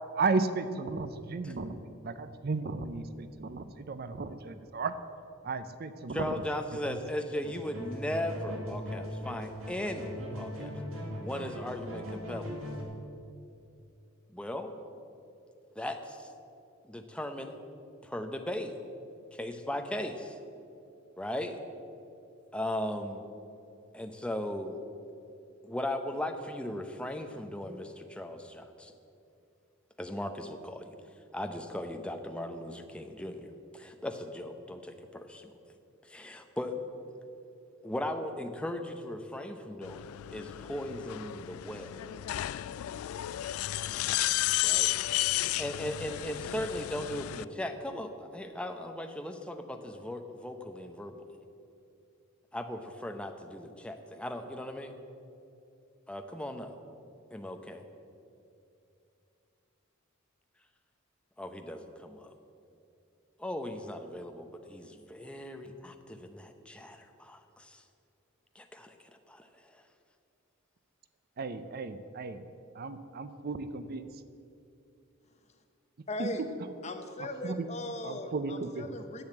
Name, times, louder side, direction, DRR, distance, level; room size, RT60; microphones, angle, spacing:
voice 1, 0.1-4.9 5.4-6.4 6.9-7.0 71.4-72.4 72.7-74.1 76.2-76.3 77.2-77.7 78.0-78.9, right 4 dB, 45° right, 11 dB, 0.5 m, -34 dB
voice 2, 6.1-10.7 11.2-12.6 14.3-14.8 15.8-16.3 16.9-17.5 18.0-18.7 19.3-20.3 21.2-21.6 22.5-23.3 23.9-24.8 25.6-28.9 30.0-30.9 31.3-35.5 36.1-36.8 37.8-42.0 44.6-44.9 45.6-51.2 52.5-55.0 56.1-56.7 57.3-57.8 61.4-62.3 63.4-67.8 68.5-68.9 69.3-69.5, left 1 dB, 5° left, 6 dB, 0.7 m, -37 dB
sound 1, 7.4-12.8, equal, 70° right, 2.1 m, -39 dB
sound 2, 39.8-47.4, left 15 dB, 80° left, 0.3 m, -33 dB
voice 3, 76.1-76.5 76.8-79.2, left 1 dB, 30° left, 6 dB, 0.9 m, -38 dB
10.5 x 7.9 x 7.9 m, 2.7 s
head